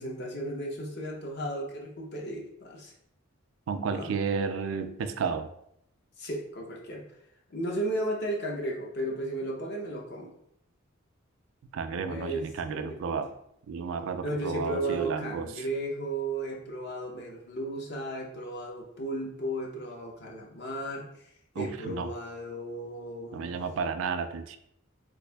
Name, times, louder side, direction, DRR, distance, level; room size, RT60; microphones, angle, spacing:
voice 1, 0.0-2.9 3.9-4.1 6.2-7.0 7.5-10.3 12.0-13.2 14.2-21.1 21.6-23.6, right 1 dB, 55° left, -1 dB, 0.7 m, -34 dB
voice 2, 3.7-5.5 11.7-13.3 13.7-15.6 21.6-22.1 23.3-24.6, right 5 dB, 75° right, 9 dB, 0.3 m, -32 dB
3.3 x 2.5 x 3.3 m, 0.75 s
head